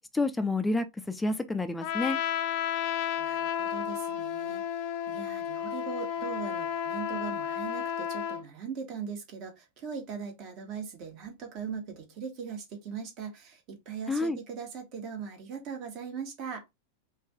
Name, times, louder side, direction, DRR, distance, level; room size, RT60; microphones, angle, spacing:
voice 1, 0.1-2.2 14.1-14.4, left 2 dB, 10° left, 0.6 m, -29 dB
Trumpet, 1.8-8.4, left 9 dB, 45° left, 0.8 m, -32 dB
voice 2, 3.2-16.7, right 6 dB, 40° right, 1.4 m, -40 dB
4.8 x 2.6 x 3.5 m
figure-of-eight pair, 90°, 0 cm